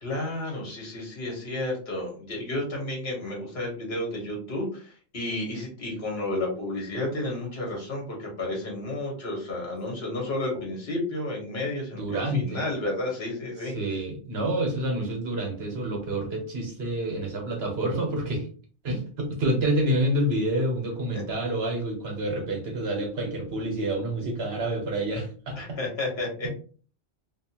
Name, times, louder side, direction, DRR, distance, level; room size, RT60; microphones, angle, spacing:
voice 1, 0.0-13.7 21.1-21.2 25.5-26.5, left 2 dB, 60° left, -1 dB, 1.5 m, -32 dB
voice 2, 11.9-12.6 13.7-18.5 18.8-25.8, right 1 dB, 60° right, 1 dB, 1.2 m, -28 dB
2.8 x 2.4 x 2.8 m, 0.40 s
omnidirectional pair, 1.2 m